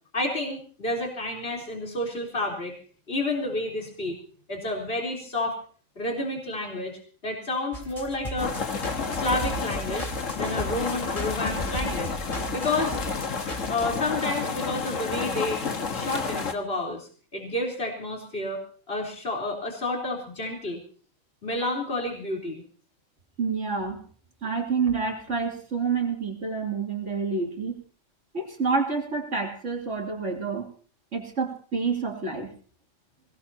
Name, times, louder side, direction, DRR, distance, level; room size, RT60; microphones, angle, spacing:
voice 1, 0.1-2.8 3.1-4.2 4.5-5.6 6.0-7.0 7.2-8.6 9.2-10.1 10.4-12.2 12.5-13.0 13.7-15.6 15.9-20.8 21.4-22.6, left 2 dB, 45° left, -1 dB, 4.2 m, -30 dB
sound 1, 7.7-14.0, right 1 dB, 25° left, 3.2 m, -36 dB
sound 2, 8.4-16.5, left 5 dB, 75° left, 1.9 m, -30 dB
voice 2, 23.4-24.0 24.4-27.8 28.3-30.7 31.1-32.5, right 5 dB, 65° right, 1 dB, 3.4 m, -28 dB
22.0 x 19.0 x 2.9 m, 0.43 s
omnidirectional pair, 1.4 m